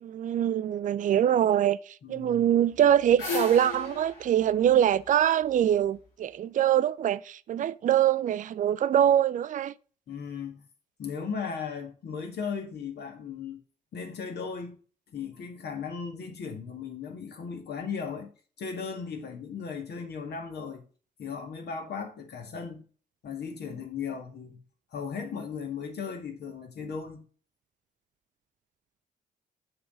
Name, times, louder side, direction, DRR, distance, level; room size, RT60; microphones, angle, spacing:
voice 1, 0.0-1.8 2.1-9.7, right 10 dB, 40° right, 0.4 m, -24 dB
voice 2, 2.0-2.4 10.1-10.6 11.0-13.6 13.9-14.8 15.1-18.3 18.6-20.9 21.2-22.8 23.2-24.6 24.9-27.2, left 6 dB, 55° left, 1.7 m, -36 dB
sound 1, 2.7-5.8, left 3 dB, 75° left, 2.1 m, -36 dB
6.9 x 5.1 x 5.4 m
figure-of-eight pair, 40°, 20 cm